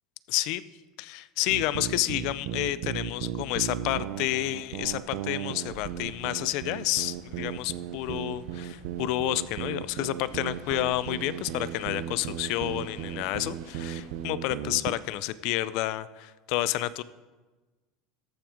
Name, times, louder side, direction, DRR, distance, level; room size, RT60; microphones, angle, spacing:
voice 1, 0.3-0.6 1.0-17.0, left 15 dB, 50° left, 17 dB, 0.3 m, -30 dB
sound 1, 1.5-15.0, right 11 dB, 60° right, 0.5 m, -35 dB
Orkney Brough of Birsay B, 4.0-14.3, right 6 dB, 80° right, 1.4 m, -53 dB
sound 2, 5.5-14.3, equal, 30° left, 2.7 m, -53 dB
14.0 x 6.0 x 5.0 m, 1.3 s
cardioid pair, 180°, 0 cm